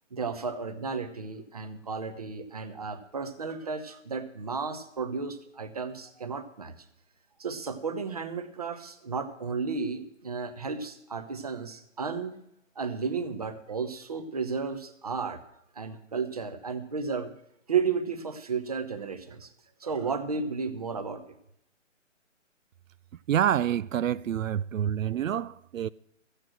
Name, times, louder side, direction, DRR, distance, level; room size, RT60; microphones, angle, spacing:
voice 1, 0.1-6.7 7.4-12.4 12.8-15.4 15.7-17.3 17.7-19.5 19.8-21.2, right 5 dB, 30° right, 0.9 m, -33 dB
voice 2, 23.3-25.9, right 10 dB, 85° right, 0.5 m, -27 dB
14.0 x 8.4 x 7.6 m
hypercardioid pair, 170°, 39 cm